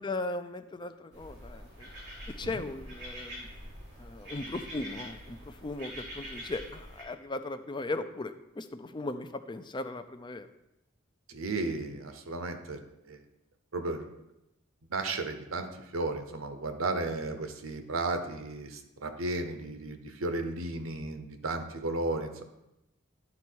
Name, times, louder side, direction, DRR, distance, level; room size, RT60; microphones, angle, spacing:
voice 1, 0.0-1.9 2.4-3.5 4.0-10.5, left 2 dB, 20° left, 9 dB, 0.4 m, -37 dB
sound 1, 1.1-7.0, equal, 55° right, 2.9 m, -45 dB
voice 2, 11.3-12.8 13.1-13.2 13.7-14.1 14.9-15.7 15.9-22.4, right 2 dB, 75° right, 8 dB, 0.8 m, -34 dB
11.0 x 4.2 x 4.6 m, 0.90 s
head